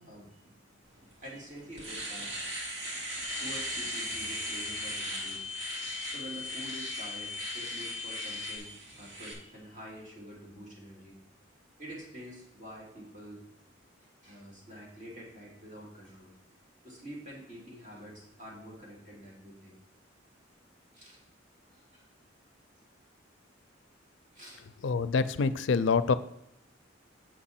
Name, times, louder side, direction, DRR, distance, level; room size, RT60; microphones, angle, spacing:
voice 1, 0.0-2.9 3.1-5.4 6.1-11.2 11.8-13.5 14.2-16.3 16.8-19.8 20.9-21.2 21.7-22.1 24.3-24.6, equal, 40° right, -4 dB, 3.4 m, -47 dB
Domestic sounds home sounds, 1.1-1.2 1.6-9.3, right 1 dB, 65° right, 2.6 m, -39 dB
sound 1, 3.2-8.6, left 6 dB, 5° left, 2.2 m, -40 dB
voice 2, 24.8-26.2, left 4 dB, 70° left, 14 dB, 0.4 m, -26 dB
7.8 x 6.1 x 4.2 m, 0.83 s
head